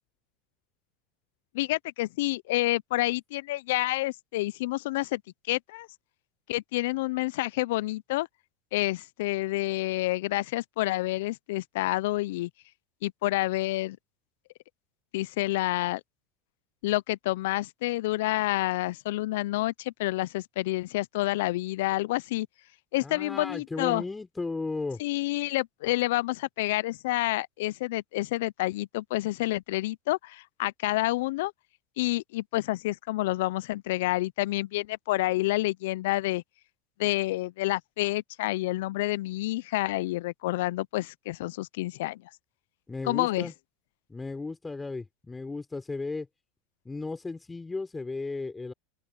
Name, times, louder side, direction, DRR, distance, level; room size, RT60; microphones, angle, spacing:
voice 1, 1.5-5.2 5.5-5.9 6.5-8.3 8.7-12.5 13.0-14.0 15.1-16.0 16.8-22.5 22.9-24.0 25.0-31.5 32.0-36.4 37.0-42.2 43.0-43.5, left 18 dB, 70° left, 0.7 m, -28 dB
voice 2, 23.0-25.0 42.9-43.5 44.1-46.3 46.8-48.7, left 3 dB, 15° left, 4.1 m, -35 dB
open air
hypercardioid pair, 85°, 0 cm